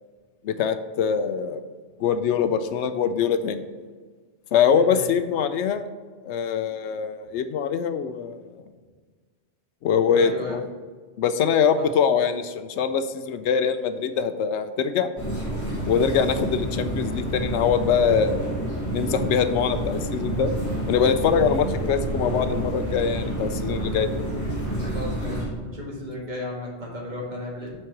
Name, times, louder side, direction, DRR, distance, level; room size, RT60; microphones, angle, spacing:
voice 1, 0.4-1.6 2.0-3.6 4.5-5.8 6.2-8.5 9.8-10.6 11.2-15.1 15.8-18.5 18.9-20.5 20.9-24.1, left 7 dB, 80° left, 10 dB, 0.9 m, -23 dB
voice 2, 4.7-5.1 10.1-10.6 11.8-11.9 24.8-27.7, left 1 dB, 40° right, -3 dB, 1.7 m, -34 dB
sound 1, 15.2-25.4, right 1 dB, 15° left, 2.4 m, -28 dB
6.1 x 4.6 x 5.9 m, 1.5 s
omnidirectional pair, 1.2 m